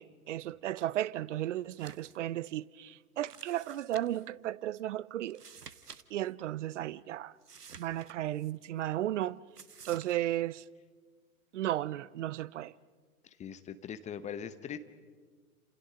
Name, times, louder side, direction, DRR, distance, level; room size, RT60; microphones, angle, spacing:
voice 1, 0.0-5.4 6.1-7.3 7.8-9.4 9.8-10.6 11.5-12.7, right 13 dB, 50° right, 0.7 m, -34 dB
sound 1, 1.7-2.2 2.5-2.6 3.2-4.3 5.2-6.0 6.3-6.4 7.4-8.5 9.5-10.1, right 6 dB, 85° right, 1.1 m, -51 dB
voice 2, 13.2-14.8, left 8 dB, 15° left, 1.0 m, -41 dB
29.5 x 28.0 x 5.2 m
figure-of-eight pair, 105°, 46 cm